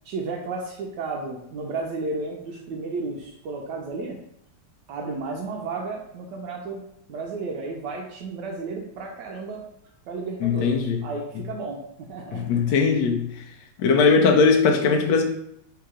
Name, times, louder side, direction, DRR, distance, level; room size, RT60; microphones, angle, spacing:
voice 1, 0.0-4.2 4.9-6.8 7.1-9.6 10.1-12.8, right 3 dB, 75° right, -1 dB, 1.0 m, -33 dB
voice 2, 10.4-11.0 12.3-13.4 13.8-15.2, left 4 dB, 75° left, 2 dB, 1.0 m, -20 dB
3.5 x 2.9 x 4.8 m, 0.76 s
omnidirectional pair, 2.4 m